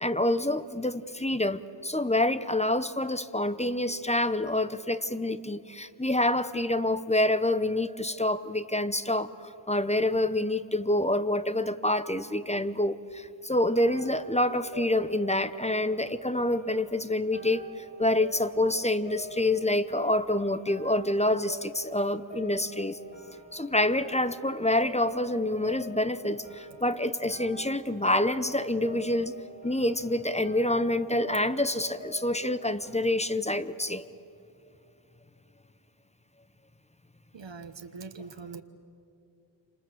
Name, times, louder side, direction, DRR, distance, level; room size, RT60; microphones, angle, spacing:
voice 1, 0.0-23.0 23.5-29.4 29.6-34.1, left 1 dB, 15° left, 13 dB, 0.8 m, -27 dB
sound 1, 13.6-32.9, equal, 70° left, 7.5 m, -46 dB
voice 2, 37.3-38.6, right 4 dB, 65° right, 8 dB, 1.3 m, -42 dB
28.5 x 26.5 x 7.7 m, 2.6 s
wide cardioid pair, 90°, 47 cm